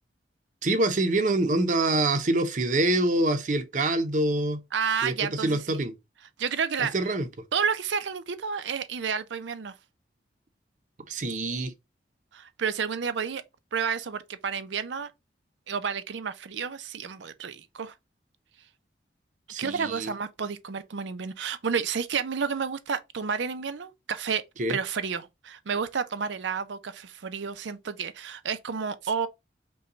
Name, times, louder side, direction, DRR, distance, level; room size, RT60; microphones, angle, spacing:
voice 1, 0.6-4.6 5.0-5.9 6.8-7.3 11.1-11.7 19.5-20.1 24.6-24.8, right 2 dB, 45° right, 0.6 m, -25 dB
voice 2, 4.7-5.8 6.4-6.9 7.5-9.7 12.3-13.4 13.7-15.1 15.7-17.9 19.6-24.4 24.7-29.3, right 6 dB, 85° right, 0.5 m, -30 dB
5.4 x 2.3 x 3.8 m
head